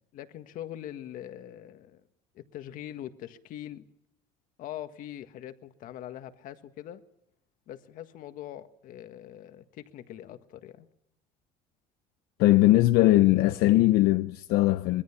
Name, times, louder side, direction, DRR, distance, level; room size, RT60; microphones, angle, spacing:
voice 1, 0.1-2.0 2.3-3.8 4.6-7.0 7.7-10.9, left 12 dB, 60° left, 1.7 m, -42 dB
voice 2, 12.4-15.0, left 16 dB, 80° left, 0.8 m, -20 dB
24.5 x 22.5 x 5.9 m
cardioid pair, 155°, 16 cm